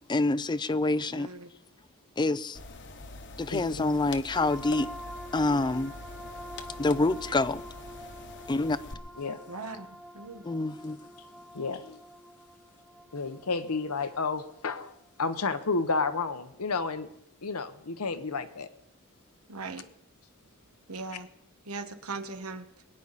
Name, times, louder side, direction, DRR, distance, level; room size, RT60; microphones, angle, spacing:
voice 1, 0.1-1.3 2.2-2.6 3.4-4.9 5.3-5.9 6.8-7.6 8.5-8.8 10.4-11.0, left 2 dB, 20° left, 0.4 m, -26 dB
voice 2, 1.1-1.5 9.5-9.9 10.1-10.5 19.5-19.8 20.9-21.3 21.6-22.7, right 3 dB, 80° right, 1.3 m, -39 dB
sound 1, 2.5-8.9, left 2 dB, 55° left, 1.1 m, -44 dB
voice 3, 3.5-3.9 9.2-9.4 11.5-12.0 13.1-17.1 17.4-18.7, left 4 dB, 85° left, 1.0 m, -31 dB
sound 2, 4.3-15.7, equal, 5° right, 1.3 m, -46 dB
23.0 x 10.0 x 4.1 m
head